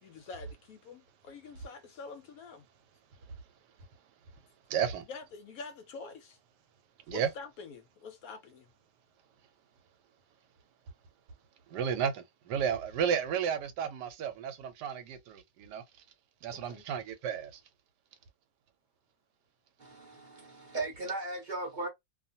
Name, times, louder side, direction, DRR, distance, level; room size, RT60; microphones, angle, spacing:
voice 1, 0.0-2.6 5.1-6.4 7.1-8.7 16.5-16.9, left 4 dB, 70° left, 0.9 m, -46 dB
voice 2, 4.7-5.0 7.1-7.3 11.7-15.8 16.4-17.6, right 8 dB, 90° right, 1.2 m, -33 dB
voice 3, 19.8-21.9, right 2 dB, 45° right, 0.6 m, -37 dB
2.5 x 2.4 x 2.7 m
omnidirectional pair, 1.8 m